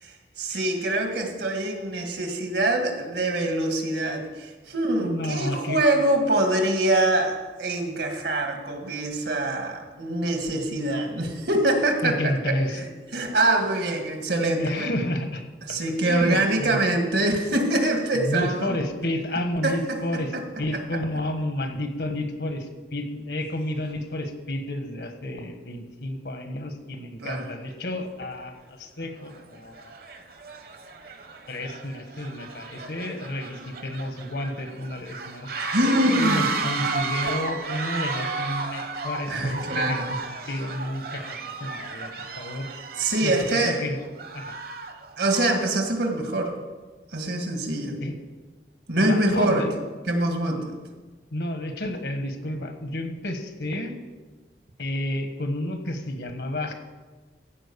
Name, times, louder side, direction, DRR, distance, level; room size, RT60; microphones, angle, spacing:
voice 1, 0.0-12.2 12.7-12.9 13.1-14.9 15.7-18.8 19.6-20.4 27.2-27.5 35.6-36.5 39.3-40.1 43.0-43.8 45.2-46.5 47.1-48.0 48.9-49.6 50.1-50.8, right 1 dB, 75° right, 4 dB, 1.7 m, -24 dB
voice 2, 5.0-5.8 12.0-12.8 14.6-15.5 16.0-16.8 18.1-20.3 20.6-29.9 31.5-35.5 36.2-40.2 40.5-42.1 42.4-42.7 43.2-43.3 43.6-44.0 44.3-44.5 48.0-48.1 49.0-49.7 51.3-53.9 54.8-56.7, left 1 dB, 75° left, 6 dB, 1.4 m, -31 dB
sound 1, 28.3-28.4 29.2-29.4 29.7-45.7, right 4 dB, 55° right, 1.0 m, -33 dB
15.0 x 5.1 x 6.9 m, 1.3 s
head